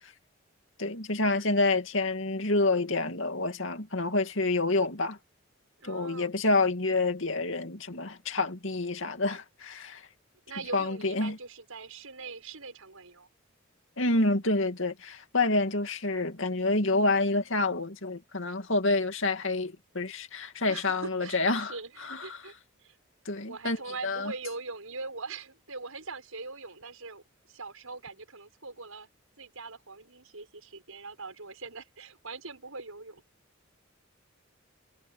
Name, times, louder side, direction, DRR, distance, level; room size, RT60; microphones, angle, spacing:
voice 1, 0.8-5.2 5.8-10.0 10.7-11.4 14.0-21.7 22.0-22.4 23.3-23.8 24.0-24.3, left 2 dB, 65° left, 2.5 m, -28 dB
voice 2, 5.8-6.3 10.5-13.3 20.6-23.0 23.5-29.1 29.4-33.2, right 3 dB, 85° right, 6.7 m, -42 dB
head